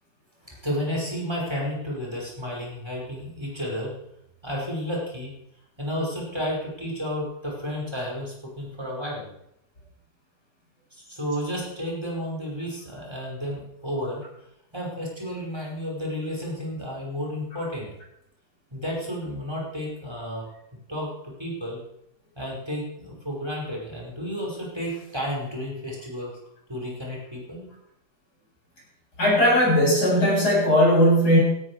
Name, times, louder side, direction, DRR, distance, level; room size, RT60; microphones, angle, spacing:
voice 1, 0.4-3.9 4.4-5.3 5.8-9.3 10.9-14.2 14.7-17.9 18.7-20.4 20.9-21.8 22.4-26.3 26.7-27.7, equal, 15° right, -3 dB, 5.5 m, -32 dB
voice 2, 29.2-31.4, equal, 65° left, -4 dB, 8.8 m, -18 dB
17.5 x 13.5 x 4.9 m, 0.78 s
omnidirectional pair, 1.8 m